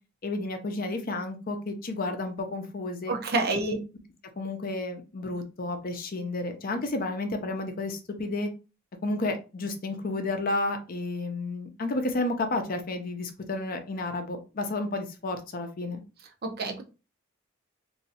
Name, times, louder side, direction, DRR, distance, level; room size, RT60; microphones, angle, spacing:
voice 1, 0.2-3.2 3.5-3.8 4.4-8.5 9.0-16.0, left 2 dB, 45° left, 6 dB, 0.5 m, -31 dB
voice 2, 3.1-3.8 16.4-16.8, right 3 dB, 50° right, 4 dB, 0.6 m, -28 dB
3.0 x 2.7 x 2.7 m, 0.31 s
head